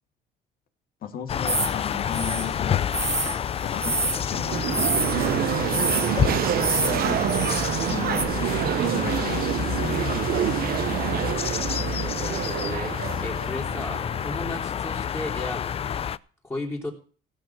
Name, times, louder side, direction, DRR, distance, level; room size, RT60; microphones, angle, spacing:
voice 1, 1.0-2.9 3.6-8.3 8.8-10.2 10.5-10.6, left 8 dB, 60° left, 7 dB, 2.2 m, -36 dB
sound 1, 1.3-16.2, left 8 dB, 35° left, 0.5 m, -29 dB
sound 2, 1.5-8.2, right 3 dB, 15° right, 1.2 m, -29 dB
sound 3, 4.3-14.3, right 12 dB, 60° right, 0.8 m, -27 dB
voice 2, 12.2-16.1 16.4-16.9, left 2 dB, 15° left, -1 dB, 3.6 m, -35 dB
17.0 x 6.2 x 6.0 m, 0.41 s
cardioid pair, 110°, 17 cm